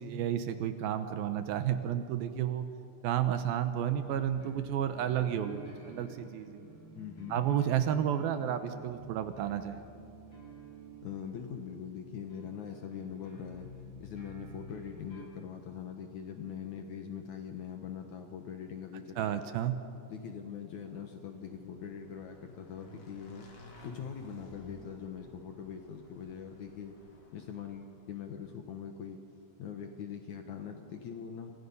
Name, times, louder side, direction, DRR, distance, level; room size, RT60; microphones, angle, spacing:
voice 1, 0.0-2.7 3.0-6.7 7.3-9.8 19.2-19.8, right 10 dB, 75° right, 9 dB, 2.2 m, -31 dB
sound 1, 4.0-15.2, right 2 dB, 15° left, 6.7 m, -50 dB
voice 2, 6.9-7.4 11.0-13.7 14.0-19.4 20.1-23.5 23.8-27.0 27.3-29.2 29.6-31.5, left 7 dB, 80° left, 4 dB, 1.6 m, -42 dB
Motorcycle / Engine, 20.9-28.2, left 1 dB, 45° left, 3.6 m, -55 dB
28.5 x 26.0 x 5.5 m, 2.5 s
omnidirectional pair, 5.3 m